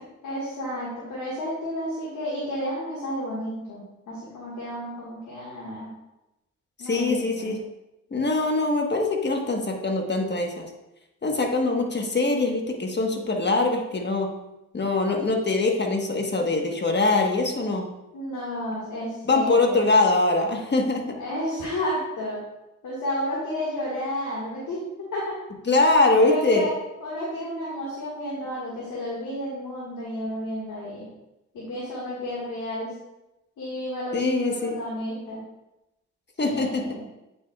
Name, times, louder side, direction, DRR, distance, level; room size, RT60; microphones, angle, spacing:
voice 1, 0.2-5.9 6.8-7.5 18.1-19.9 21.2-22.4 22.8-25.4 26.2-26.7 27.0-31.1 31.5-32.9 33.6-35.4 36.4-37.0, left 1 dB, 80° left, -7 dB, 1.8 m, -31 dB
voice 2, 6.8-7.6 8.1-10.6 11.2-14.3 14.7-17.9 19.2-21.0 25.7-26.7 34.1-34.8 36.4-36.8, left 3 dB, 35° left, 2 dB, 1.3 m, -23 dB
8.7 x 5.5 x 2.4 m, 0.94 s
cardioid pair, 60°, 30 cm